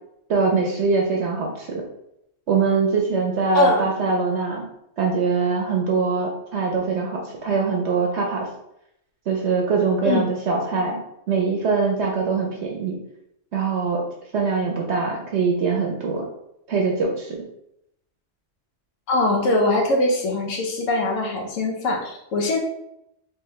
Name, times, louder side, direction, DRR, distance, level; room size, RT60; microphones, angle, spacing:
voice 1, 0.3-1.8 2.5-4.6 5.0-8.5 9.3-11.0 11.3-13.0 13.5-14.0 14.3-16.3 16.7-17.4, right 4 dB, 65° right, 0 dB, 0.9 m, -23 dB
voice 2, 19.1-22.6, left 2 dB, 90° left, 0 dB, 1.2 m, -22 dB
3.4 x 3.2 x 3.1 m, 0.80 s
omnidirectional pair, 1.3 m